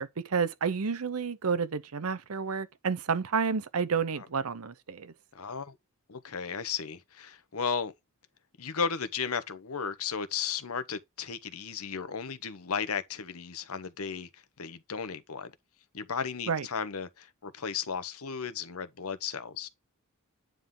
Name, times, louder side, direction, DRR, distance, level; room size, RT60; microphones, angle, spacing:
voice 1, 0.0-5.1 16.5-16.7, right 5 dB, 75° right, 0.7 m, -30 dB
voice 2, 5.3-5.8 6.1-7.9 8.6-14.3 14.6-15.5 15.9-19.7, left 6 dB, 80° left, 1.0 m, -35 dB
9.3 x 3.7 x 3.8 m
head